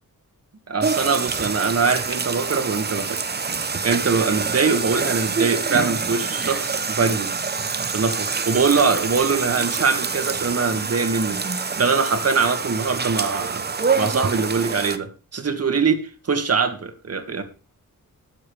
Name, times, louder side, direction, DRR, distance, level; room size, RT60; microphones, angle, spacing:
voice 1, 0.7-3.2 3.8-7.4 7.9-13.6 14.0-17.4, right 5 dB, 45° right, 7 dB, 2.0 m, -23 dB
sound 1, 0.8-15.0, right 5 dB, 30° right, 0.8 m, -26 dB
21.0 x 7.6 x 3.4 m, 0.33 s
wide cardioid pair, 140°, 34 cm